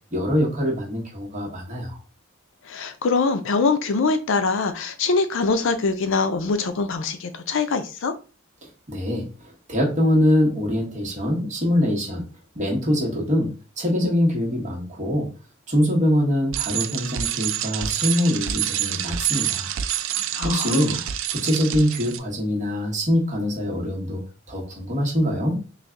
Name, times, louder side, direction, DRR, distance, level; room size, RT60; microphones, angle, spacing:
voice 1, 0.1-2.0 8.6-9.3 9.7-12.2 12.5-15.3 15.7-19.7 20.4-20.9 21.3-24.2 24.5-25.6, equal, 35° right, 1.3 m, -23 dB
voice 2, 2.7-8.1 20.3-21.0, left 4 dB, 65° left, 0.5 m, -23 dB
Bicycle, 16.5-22.2, right 11 dB, 65° right, 0.4 m, -27 dB
3.3 x 2.5 x 3.6 m
head